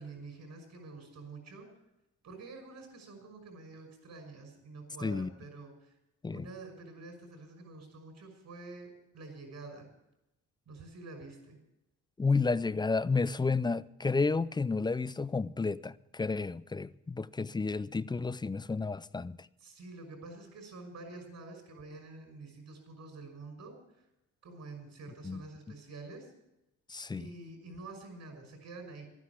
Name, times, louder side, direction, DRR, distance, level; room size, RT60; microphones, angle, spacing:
voice 1, 0.0-1.7 2.2-5.9 6.3-9.9 10.7-11.6 19.6-24.1 24.4-26.3 27.1-29.1, right 3 dB, 65° right, 5.9 m, -48 dB
voice 2, 5.0-5.3 6.2-6.5 12.2-19.5 25.2-25.4 26.9-27.3, left 4 dB, 15° left, 0.4 m, -31 dB
12.5 x 9.8 x 8.4 m
cardioid pair, 90°, 30 cm